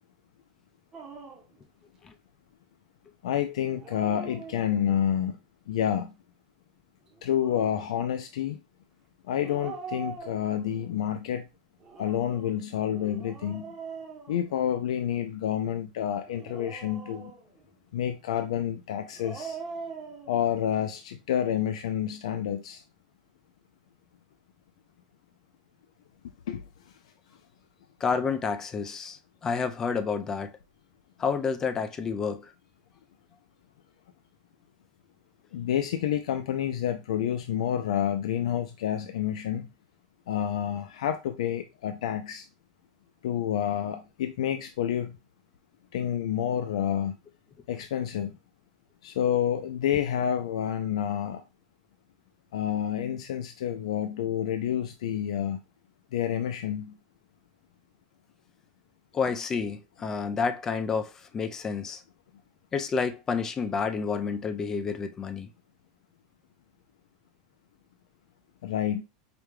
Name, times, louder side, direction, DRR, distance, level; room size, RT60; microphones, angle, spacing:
Dog, 0.9-1.6 3.6-5.0 7.1-7.9 9.4-10.9 11.8-15.0 16.3-17.7 19.0-20.3, right 5 dB, 15° right, 0.8 m, -43 dB
voice 1, 3.2-5.4 5.7-6.1 7.2-8.6 9.3-11.5 12.0-13.7 14.3-17.3 17.9-19.6 20.3-22.8 26.5-26.6 35.5-39.7 40.3-42.5 43.2-45.2 45.9-47.2 47.7-48.3 49.0-51.4 52.5-55.6 56.1-57.0 68.6-69.0, left 10 dB, 80° left, 0.4 m, -29 dB
voice 2, 28.0-30.5 31.2-32.5 59.1-62.0 62.7-65.5, left 5 dB, 15° left, 0.3 m, -29 dB
5.0 x 2.2 x 3.1 m
supercardioid pair, 165°, 3 cm